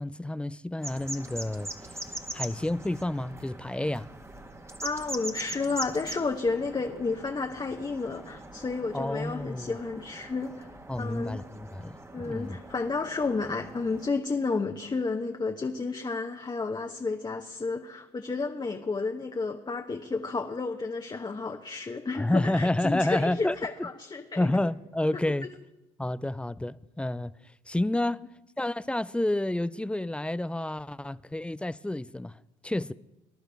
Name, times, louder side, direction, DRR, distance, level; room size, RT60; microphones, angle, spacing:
voice 1, 0.0-1.7 2.3-4.1 8.9-9.7 10.9-12.6 22.1-23.6 24.4-25.5 26.0-27.4 27.7-28.2 28.6-32.9, left 1 dB, 5° left, 0.4 m, -29 dB
sound 1, 0.8-14.1, right 1 dB, 15° right, 1.4 m, -42 dB
voice 2, 4.8-10.7 11.0-11.4 12.1-24.5 25.1-25.2 28.1-28.3, left 4 dB, 25° left, 1.0 m, -31 dB
19.5 x 11.0 x 3.5 m
hypercardioid pair, 60°, 17 cm